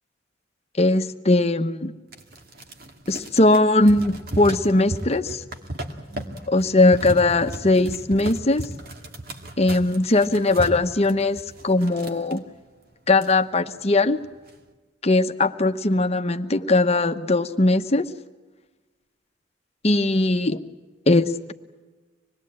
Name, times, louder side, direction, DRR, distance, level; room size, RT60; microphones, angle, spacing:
voice 1, 0.8-1.9 3.1-5.4 6.5-8.7 9.6-12.4 13.1-14.2 15.0-18.1 19.8-20.6 21.1-21.5, left 2 dB, 35° left, 7 dB, 1.1 m, -20 dB
sound 1, 2.1-12.4 12.9-13.0 13.1-13.8 14.2-14.6, right 1 dB, 55° right, 2.2 m, -36 dB
26.0 x 20.0 x 8.7 m, 1.3 s
head